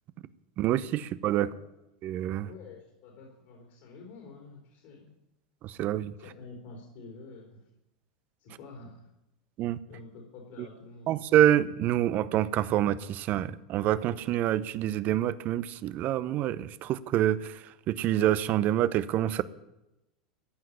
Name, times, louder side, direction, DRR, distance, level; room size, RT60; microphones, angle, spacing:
voice 1, 0.6-1.5 2.0-2.5 5.6-6.1 9.6-9.8 11.1-19.4, right 12 dB, 45° right, 16 dB, 0.7 m, -27 dB
voice 2, 2.4-5.1 6.2-7.6 8.4-9.1 9.9-11.1, left 3 dB, 60° left, -1 dB, 3.8 m, -48 dB
14.5 x 5.9 x 9.9 m, 0.93 s
hypercardioid pair, 95°, 4 cm